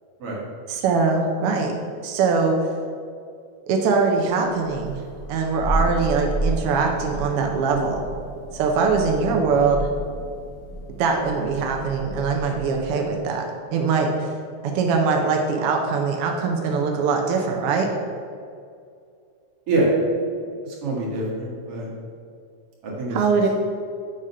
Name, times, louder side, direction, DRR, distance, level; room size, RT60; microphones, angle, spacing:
voice 1, 0.7-1.8 2.0-2.7 3.7-5.0 5.3-8.1 8.5-9.9 10.9-13.4 13.7-14.3 14.6-17.9 23.1-23.5, right 4 dB, 80° right, 2 dB, 1.3 m, -22 dB
Thunder, 4.6-13.0, right 2 dB, 50° left, 2.4 m, -31 dB
voice 2, 20.6-21.9 22.8-23.2, right 2 dB, 55° right, -4 dB, 2.4 m, -25 dB
7.8 x 3.7 x 5.4 m, 2.3 s
omnidirectional pair, 3.3 m